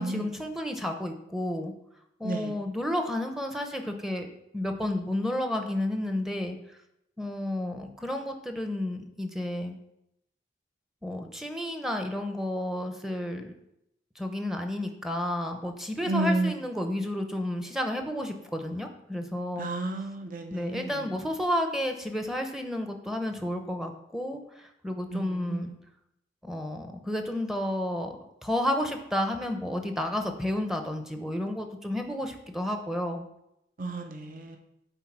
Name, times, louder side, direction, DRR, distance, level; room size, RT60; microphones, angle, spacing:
voice 1, 0.0-1.7 2.2-4.3 4.5-6.6 7.2-9.8 11.0-13.6 14.2-19.7 20.5-25.7 26.4-28.2 28.4-33.3, left 1 dB, ahead, 4 dB, 0.7 m, -31 dB
voice 2, 16.0-16.5 19.6-20.9 25.1-25.6 33.8-34.6, right 2 dB, 50° right, 4 dB, 0.8 m, -31 dB
9.0 x 3.9 x 5.9 m, 0.82 s
head